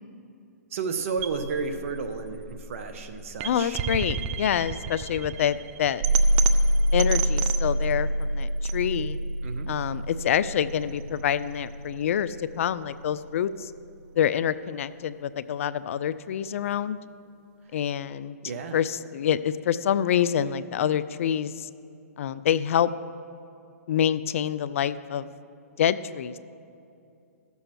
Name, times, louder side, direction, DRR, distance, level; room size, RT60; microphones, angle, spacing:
voice 1, 0.7-3.8 9.4-9.7 17.6-17.9 18.4-18.8, right 5 dB, 55° right, 7 dB, 1.0 m, -32 dB
sound 1, 1.2-13.2, right 1 dB, 35° right, 0.6 m, -27 dB
voice 2, 3.4-6.0 6.9-9.2 9.7-13.7 14.1-17.0 17.7-18.4 18.7-21.7 22.2-22.9 23.9-25.3 25.8-26.4, left 9 dB, 55° left, 15 dB, 0.4 m, -26 dB
14.5 x 6.9 x 4.5 m, 2.6 s
hypercardioid pair, 135°, 9 cm